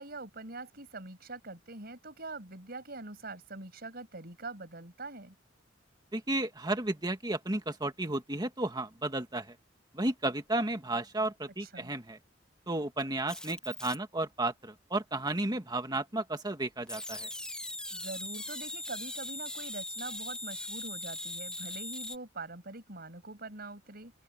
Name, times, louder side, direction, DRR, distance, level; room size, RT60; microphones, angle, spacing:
voice 1, 0.0-5.3 11.6-11.9 17.9-24.1, right 3 dB, 55° right, 6.5 m, -44 dB
voice 2, 6.1-9.6 9.9-12.2 12.7-17.3, right 2 dB, 20° right, 1.9 m, -33 dB
sound 1, 13.3-14.0 16.9-22.2, left 1 dB, 5° left, 1.0 m, -40 dB
open air
head